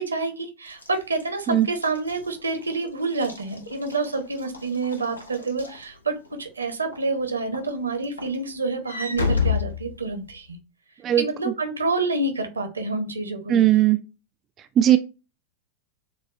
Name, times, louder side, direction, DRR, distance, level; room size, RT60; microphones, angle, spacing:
voice 1, 0.0-10.6 11.2-13.6, right 3 dB, 75° right, 6 dB, 0.8 m, -28 dB
Walk footsteps / Slam, 0.7-6.4 6.9-7.2 7.5-10.5, left 5 dB, 80° left, 0.7 m, -31 dB
voice 2, 11.0-11.5 13.5-14.0 14.6-15.0, right 12 dB, 30° right, 8 dB, 0.3 m, -19 dB
6.8 x 2.3 x 2.4 m, 0.30 s
figure-of-eight pair, 90°, 0 cm